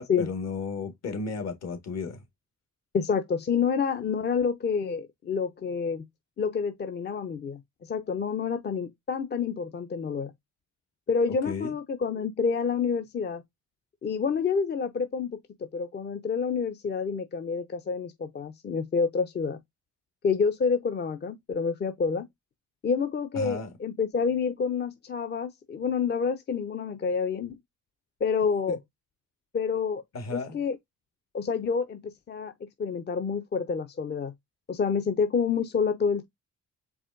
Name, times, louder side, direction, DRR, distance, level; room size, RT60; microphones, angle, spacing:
voice 1, 0.0-2.2 11.4-11.7 23.3-23.7 28.7-28.8 30.1-30.6, left 4 dB, 60° left, 1.6 m, -34 dB
voice 2, 2.9-6.0 6.4-10.3 11.1-13.4 14.0-19.6 20.2-22.3 22.8-27.6 28.2-28.8 29.5-30.0 30.3-30.8 31.3-34.3 34.7-36.3, left 5 dB, 35° left, 0.6 m, -28 dB
4.8 x 3.3 x 2.5 m
cardioid pair, 90°, 30 cm